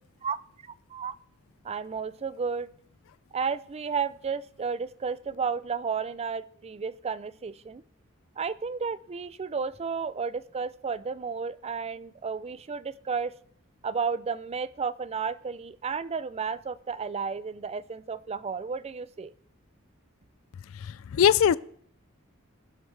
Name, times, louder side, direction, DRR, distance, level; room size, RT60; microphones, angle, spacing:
voice 1, 0.6-1.1 1.6-2.7 3.3-7.8 8.4-13.3 13.8-19.3, right 5 dB, 30° right, 0.4 m, -32 dB
voice 2, 20.7-21.6, left 8 dB, 75° left, 0.4 m, -22 dB
21.0 x 7.7 x 3.3 m
head